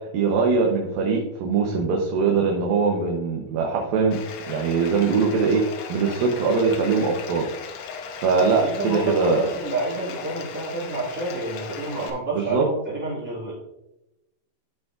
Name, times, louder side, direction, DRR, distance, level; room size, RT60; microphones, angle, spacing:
voice 1, 0.1-4.2 4.5-5.6 5.9-7.5 8.1-9.5 12.4-12.7, right 4 dB, 85° right, 0 dB, 2.7 m, -22 dB
Bathtub (filling or washing), 4.1-12.1, left 6 dB, 75° left, 2.3 m, -37 dB
voice 2, 8.4-13.5, right 2 dB, 45° right, -6 dB, 2.5 m, -29 dB
13.5 x 5.2 x 2.4 m, 0.94 s
omnidirectional pair, 4.0 m